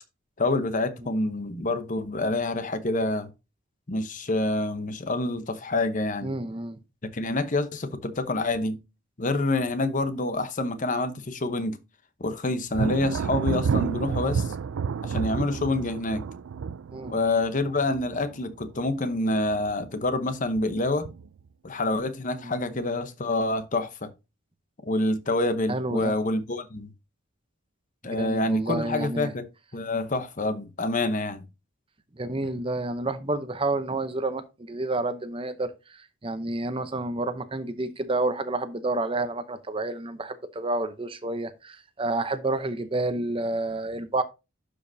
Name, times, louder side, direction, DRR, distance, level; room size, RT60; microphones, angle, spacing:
voice 1, 0.4-3.3 3.9-6.3 7.0-8.8 9.2-11.8 12.2-14.5 15.0-16.2 17.1-21.1 21.6-24.1 24.8-26.9 28.0-29.5 29.7-31.4, left 2 dB, 40° left, 0.9 m, -27 dB
voice 2, 6.2-6.8 16.9-17.1 22.4-22.5 25.7-26.1 28.0-29.3 32.2-44.2, right 2 dB, 25° right, 0.7 m, -29 dB
Thunder, 12.7-19.2 19.5-20.1 20.6-21.4, right 6 dB, 75° right, 0.4 m, -30 dB
11.5 x 5.1 x 2.7 m
head